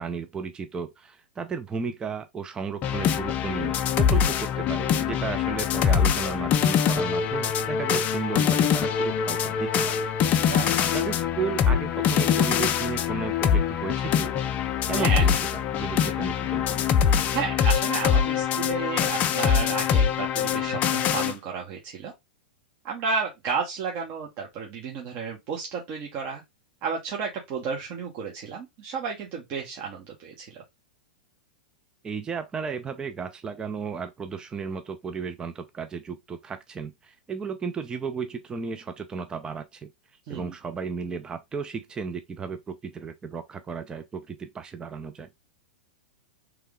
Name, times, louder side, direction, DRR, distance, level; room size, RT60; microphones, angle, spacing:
voice 1, 0.0-10.5 10.8-14.3 14.9-16.8 32.0-39.9 40.3-45.3, right 5 dB, 15° right, 0.5 m, -34 dB
sound 1, 2.8-21.3, left 8 dB, 35° left, 0.5 m, -24 dB
voice 2, 10.4-10.8 14.9-15.3 17.3-22.1 22.8-26.4 26.8-30.6 40.3-40.5, right 5 dB, 40° right, 1.1 m, -32 dB
3.7 x 3.3 x 3.5 m
figure-of-eight pair, 100°, 5 cm